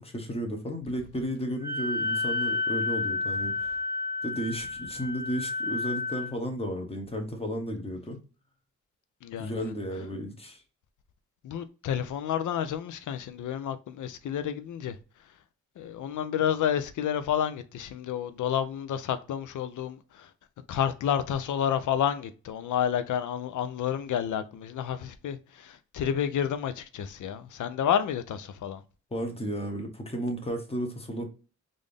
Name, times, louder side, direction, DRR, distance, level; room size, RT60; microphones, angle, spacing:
voice 1, 0.0-3.8 4.2-8.2 9.4-10.6 29.1-31.3, equal, 20° left, 0.8 m, -33 dB
Wind instrument woodwind instrument, 1.6-6.3, left 3 dB, 35° left, 1.3 m, -30 dB
voice 2, 9.2-9.7 11.4-15.0 15.8-20.3 20.7-28.8, left 9 dB, 90° left, 0.5 m, -30 dB
3.7 x 2.5 x 3.3 m
wide cardioid pair, 140°, 30 cm